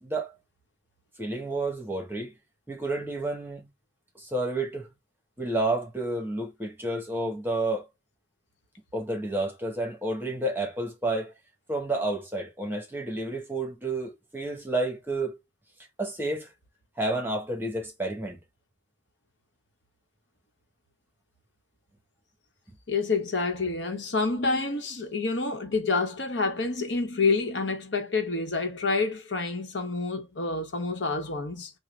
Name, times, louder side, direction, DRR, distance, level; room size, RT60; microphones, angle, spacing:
voice 1, 0.0-0.3 1.2-2.3 2.7-3.7 4.2-4.9 5.4-7.9 8.9-11.3 11.7-15.4 16.0-16.5 17.0-18.4 24.7-24.8, right 2 dB, 10° right, 1.0 m, -30 dB
voice 2, 22.9-31.7, left 3 dB, 70° left, 1.0 m, -28 dB
3.8 x 2.2 x 3.1 m
head